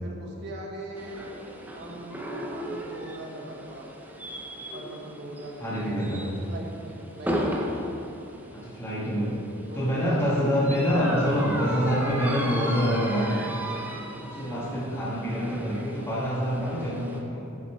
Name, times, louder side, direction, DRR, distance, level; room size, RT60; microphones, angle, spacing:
voice 1, 0.0-1.3 1.7-3.9 4.7-7.6 9.7-10.5, right 1 dB, 55° right, -1 dB, 1.1 m, -41 dB
sound 1, 1.0-17.2, equal, 10° right, 0.5 m, -36 dB
voice 2, 5.6-6.2 8.5-9.3 9.7-13.5 14.0-17.6, equal, 10° left, -8 dB, 1.4 m, -26 dB
7.9 x 5.4 x 4.4 m, 3.0 s
head